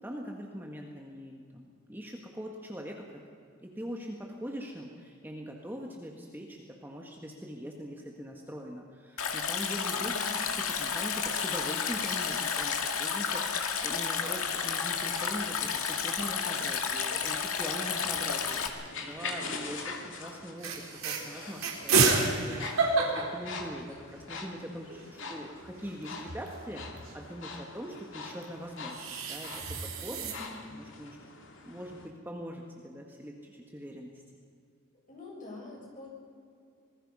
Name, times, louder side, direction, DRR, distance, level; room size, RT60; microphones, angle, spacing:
voice 1, 0.0-3.2 3.6-10.2 10.4-20.7 21.0-22.9 23.1-29.5 29.8-30.2 30.7-31.2 31.7-34.2, equal, 10° right, 0 dB, 1.8 m, -42 dB
Stream, 9.2-18.7, left 6 dB, 90° left, 2.1 m, -31 dB
voice 2, 9.9-10.4 30.0-30.6 35.1-36.1, left 2 dB, 40° left, -2 dB, 7.1 m, -46 dB
sound 1, 14.4-32.1, left 4 dB, 60° left, 2.7 m, -45 dB
sound 2, 15.0-15.6 16.0-16.1 16.3-16.9 17.8-19.1 19.7-19.9 20.3-20.4 20.6-24.3 24.6-24.7 24.9-27.2 28.4-30.3, right 4 dB, 75° right, 3.8 m, -31 dB
26.0 x 20.5 x 5.6 m, 2.3 s
head